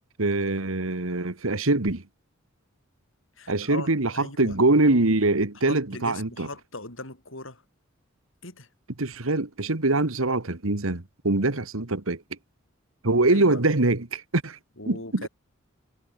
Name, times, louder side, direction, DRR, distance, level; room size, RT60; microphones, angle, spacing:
voice 1, 0.2-2.0 3.5-6.5 9.0-12.2 13.0-14.6 14.9-15.3, right 2 dB, 80° right, 1.8 m, -23 dB
voice 2, 3.4-4.6 5.7-7.6 8.4-8.7 13.3-13.6 14.8-15.3, left 2 dB, 65° left, 7.0 m, -39 dB
head